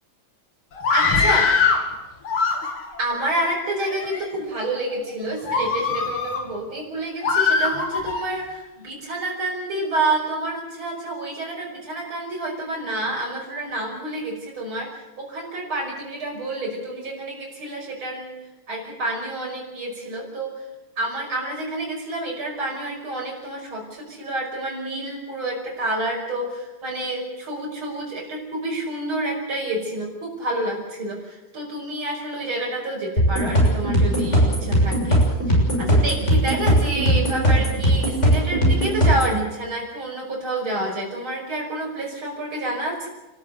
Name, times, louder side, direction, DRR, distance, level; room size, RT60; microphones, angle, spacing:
Screaming, 0.8-1.9 2.2-3.0 3.7-4.2 4.8-4.9 5.5-6.4 7.2-8.3, left 5 dB, 80° left, 3.3 m, -22 dB
voice 1, 0.9-1.5 3.0-14.9 15.2-18.3 18.7-20.5 21.0-35.2 35.8-43.1, right 1 dB, 70° right, -2 dB, 6.5 m, -28 dB
sound 1, 33.2-39.4, equal, 30° left, 7.0 m, -19 dB
29.5 x 14.0 x 8.3 m, 1.1 s
omnidirectional pair, 2.4 m